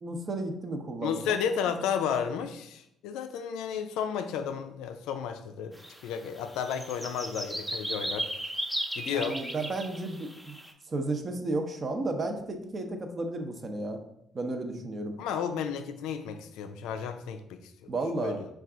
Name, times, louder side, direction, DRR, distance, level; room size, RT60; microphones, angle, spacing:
voice 1, 0.0-1.2 9.1-10.6 10.9-14.0 14.3-15.1 17.9-18.4, right 2 dB, 40° right, 4 dB, 0.6 m, -33 dB
voice 2, 1.0-5.8 6.0-8.3 9.0-9.4 15.2-17.9 18.2-18.5, left 7 dB, 85° left, 8 dB, 0.3 m, -32 dB
sound 1, 5.7-6.0 6.3-10.7, right 1 dB, 5° right, 0.6 m, -36 dB
4.5 x 2.4 x 3.7 m, 0.76 s
supercardioid pair, 70°, 0 cm